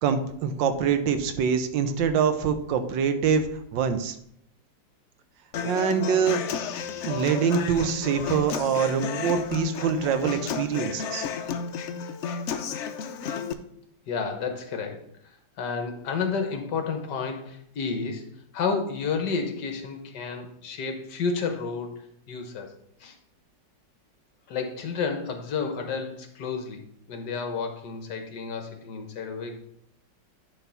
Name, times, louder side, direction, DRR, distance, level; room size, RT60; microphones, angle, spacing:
voice 1, 0.0-4.2 5.6-6.4 7.0-11.3, right 7 dB, 90° right, 9 dB, 1.5 m, -25 dB
Human voice / Acoustic guitar, 5.5-13.5, left 6 dB, 90° left, 0.6 m, -32 dB
voice 2, 14.1-18.3 18.5-22.7 23.0-23.2 24.5-26.8 27.1-29.6, left 5 dB, 70° left, 5 dB, 1.6 m, -31 dB
10.0 x 3.4 x 5.8 m, 0.70 s
omnidirectional pair, 2.0 m